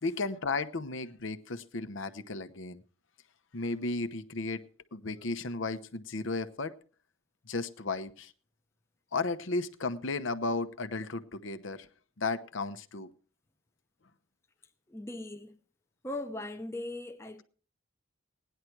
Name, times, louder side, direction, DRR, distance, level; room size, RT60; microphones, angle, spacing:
voice 1, 0.0-2.8 3.5-4.6 4.9-6.7 7.5-8.3 9.1-11.9 12.2-13.1, left 3 dB, 70° left, 0.9 m, -34 dB
voice 2, 14.9-15.6 16.0-17.4, left 1 dB, 15° left, 0.7 m, -39 dB
17.0 x 10.5 x 4.6 m
head